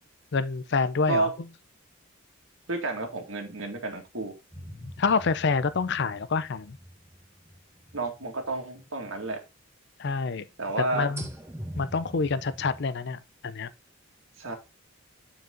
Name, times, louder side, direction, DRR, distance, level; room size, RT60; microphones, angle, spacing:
voice 1, 0.3-1.3 4.8-6.8 10.0-10.4 10.9-11.3 11.8-13.7, left 4 dB, 55° left, 0.5 m, -27 dB
voice 2, 2.7-4.3 7.9-9.4 10.6-11.1 14.4-14.6, right 3 dB, 70° right, 2.2 m, -30 dB
sound 1, 4.5-8.5 8.9-9.0 11.2-12.9, equal, 15° right, 1.2 m, -43 dB
9.3 x 4.8 x 3.9 m
head